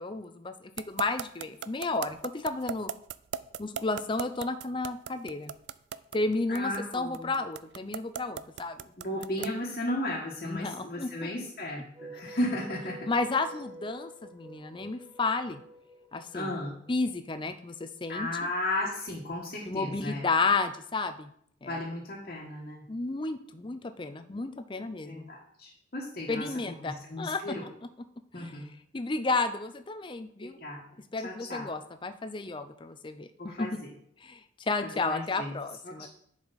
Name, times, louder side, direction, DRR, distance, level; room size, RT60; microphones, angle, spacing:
voice 1, 0.0-2.9 3.6-5.5 6.1-8.9 10.4-11.3 13.1-15.6 16.1-16.6 16.9-18.5 19.7-21.3 21.6-21.8 22.9-25.3 26.3-27.7 28.3-28.6 28.9-30.6 31.1-33.8 34.2-36.1, left 3 dB, 25° left, 10 dB, 0.5 m, -32 dB
sound 1, 0.8-9.6, right 8 dB, 65° right, 0.3 m, -37 dB
voice 2, 6.5-7.3 9.0-13.0 16.3-16.7 18.1-20.2 21.7-22.8 25.0-27.6 28.3-28.7 30.4-30.8 31.2-31.7 33.4-33.7 34.8-35.5 35.8-36.1, left 1 dB, 50° left, -4 dB, 1.5 m, -35 dB
sound 2, 11.9-17.1, right 1 dB, 35° right, 4.0 m, -48 dB
10.5 x 4.9 x 4.1 m, 0.67 s
head